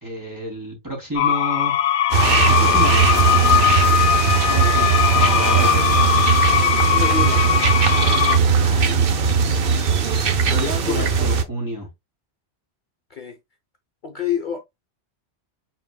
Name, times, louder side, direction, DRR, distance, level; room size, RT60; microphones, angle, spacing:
voice 1, 0.0-1.7 2.5-3.7 4.2-6.0 8.6-9.1 10.5-11.9, right 1 dB, 15° right, 2.5 m, -30 dB
sound 1, 1.2-8.4, left 10 dB, 85° left, 0.9 m, -19 dB
sound 2, 2.1-11.4, right 7 dB, 60° right, 0.9 m, -19 dB
voice 2, 6.9-7.5 10.5-11.3 13.1-13.4 14.0-14.6, left 6 dB, 50° left, 0.9 m, -27 dB
5.6 x 4.0 x 2.3 m
omnidirectional pair, 1.1 m